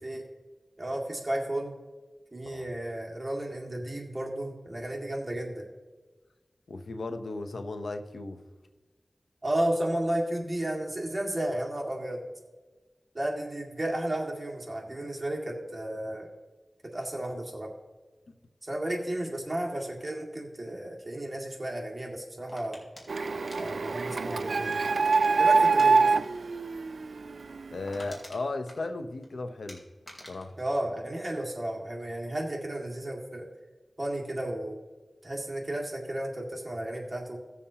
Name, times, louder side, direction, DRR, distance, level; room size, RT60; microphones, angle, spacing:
voice 1, 0.8-1.7 2.3-5.7 9.4-12.2 13.1-16.3 16.8-17.7 18.6-22.8 23.6-24.8 25.4-26.0 30.6-33.5 34.0-34.8 35.2-37.4, right 1 dB, 35° right, -1 dB, 2.1 m, -33 dB
voice 2, 6.7-8.4 27.7-29.8 30.3-30.6, left 2 dB, 85° left, 8 dB, 0.8 m, -35 dB
Crushing Pop Bottle, 22.5-25.0 25.6-25.9 26.2-26.5 26.7-26.8 27.2-27.3 27.6-29.3 29.7-31.7 32.0-32.4, equal, 20° left, 3.7 m, -49 dB
Printer, 23.1-27.7, right 4 dB, 85° right, 0.4 m, -25 dB
18.0 x 7.1 x 2.9 m, 1.3 s
cardioid pair, 45°, 0 cm